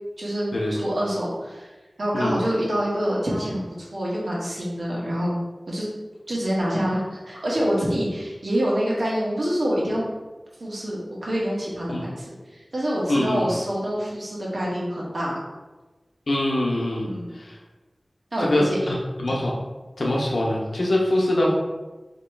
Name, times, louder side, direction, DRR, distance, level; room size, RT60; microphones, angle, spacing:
voice 1, 0.2-1.7 2.0-5.4 5.7-5.9 6.3-10.0 10.6-15.3 17.0-17.3 18.3-19.0 19.2-19.3, equal, 70° right, -5 dB, 1.3 m, -26 dB
voice 2, 13.1-13.5 16.3-17.1 17.4-17.6 18.4-19.5 20.0-21.5, left 1 dB, 80° left, -3 dB, 0.7 m, -23 dB
3.0 x 2.9 x 4.4 m, 1.2 s
wide cardioid pair, 55°, 0 cm